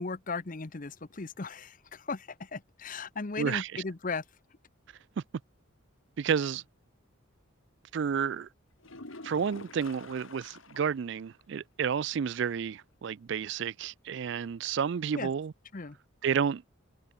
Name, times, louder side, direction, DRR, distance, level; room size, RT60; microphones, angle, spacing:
voice 1, 0.0-4.2 15.1-15.3 15.7-16.0, left 4 dB, 40° left, 0.8 m, -37 dB
voice 2, 3.4-3.8 6.2-6.6 7.9-8.5 9.2-15.5 16.2-16.6, right 7 dB, 60° right, 0.4 m, -31 dB
sound 1, 8.8-11.1 11.4-11.5 11.9-12.0 15.8-15.9, left 2 dB, 75° left, 3.3 m, -47 dB
head